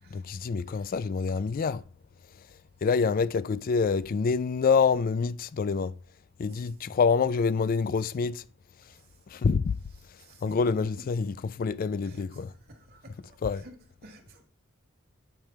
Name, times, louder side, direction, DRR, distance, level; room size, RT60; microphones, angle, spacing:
voice 1, 0.1-1.8 2.8-5.9 6.4-8.4 9.3-9.7 10.4-12.5 13.4-13.6, left 5 dB, 40° left, 0.3 m, -26 dB
voice 2, 10.2-10.5 12.0-12.2 12.7-13.4 13.6-13.7 14.0-14.4, right 1 dB, 45° right, 1.5 m, -52 dB
8.9 x 3.3 x 5.7 m
head